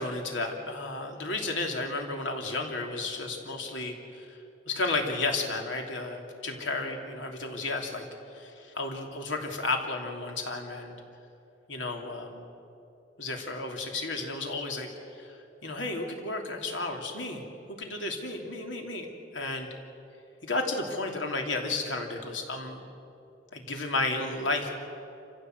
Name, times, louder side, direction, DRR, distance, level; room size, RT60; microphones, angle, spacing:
voice 1, 0.0-8.0 8.3-10.9 11.7-12.5 13.2-17.4 17.7-19.7 20.4-22.8 23.5-24.7, left 2 dB, 85° left, 2 dB, 3.0 m, -33 dB
27.5 x 15.5 x 7.9 m, 2.8 s
head